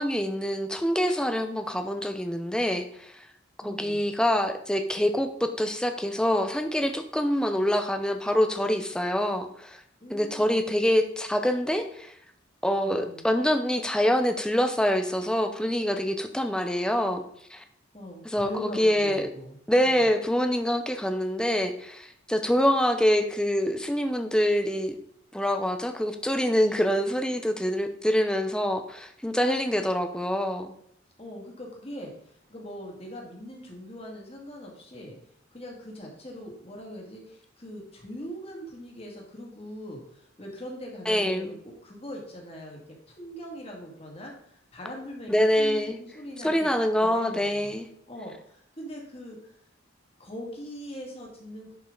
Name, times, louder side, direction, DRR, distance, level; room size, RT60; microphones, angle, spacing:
voice 1, 0.0-3.1 3.6-9.8 10.1-12.1 12.6-17.2 17.5-17.6 18.2-19.2 19.7-24.9 25.3-30.7 41.1-41.5 45.3-46.0 46.4-47.9, equal, 5° left, 7 dB, 0.7 m, -25 dB
voice 2, 3.6-4.0 10.0-10.5 12.8-13.2 17.9-19.6 19.8-20.1 31.2-35.2 35.5-42.8 43.1-47.7 48.1-49.5 50.2-51.7, equal, 30° left, 0 dB, 2.3 m, -41 dB
11.0 x 5.5 x 3.9 m, 0.69 s
head